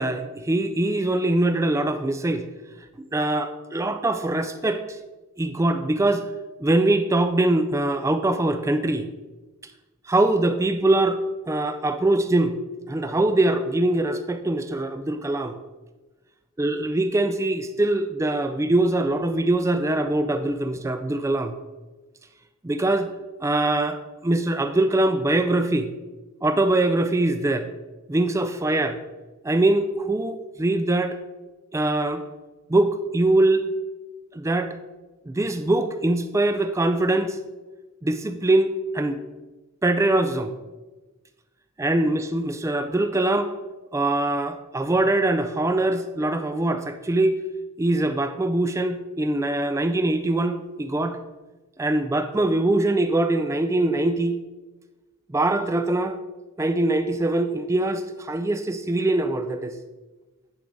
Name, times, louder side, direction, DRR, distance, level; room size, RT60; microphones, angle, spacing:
voice 1, 0.0-2.5 3.1-5.0 5.4-6.2 6.6-9.1 10.1-12.6 12.9-15.5 16.6-21.5 22.6-23.1 23.4-25.9 26.4-27.7 28.1-29.0 29.4-31.2 31.7-32.2 32.7-33.7 34.3-34.8 35.3-37.4 38.0-39.2 39.8-40.5 41.8-43.5 43.9-47.4 47.8-51.2 51.8-54.4 55.3-56.2 56.6-59.8, right 2 dB, 15° right, 9 dB, 0.3 m, -23 dB
9.9 x 4.9 x 4.0 m, 1.2 s
head